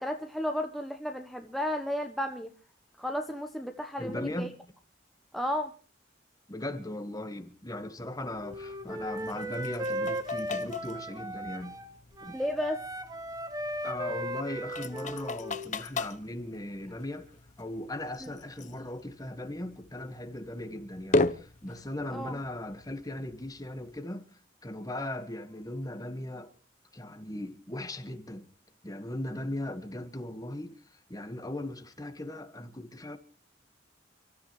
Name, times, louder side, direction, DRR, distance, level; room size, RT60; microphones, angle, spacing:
voice 1, 0.0-2.5 3.0-4.5 5.3-5.7 12.3-12.8 18.2-18.3 22.1-22.4 24.9-25.2, equal, ahead, 1.0 m, -33 dB
voice 2, 4.0-4.5 6.5-11.8 12.2-12.4 13.8-17.3 17.6-24.2 24.6-26.5 26.9-28.5 28.8-30.8 31.1-33.2, left 1 dB, 20° left, 1.5 m, -38 dB
sound 1, 8.2-24.0, left 2 dB, 40° left, 0.9 m, -38 dB
Wind instrument woodwind instrument, 8.4-11.9 12.2-15.7, right 1 dB, 20° right, 1.4 m, -37 dB
30.0 x 13.5 x 3.2 m
head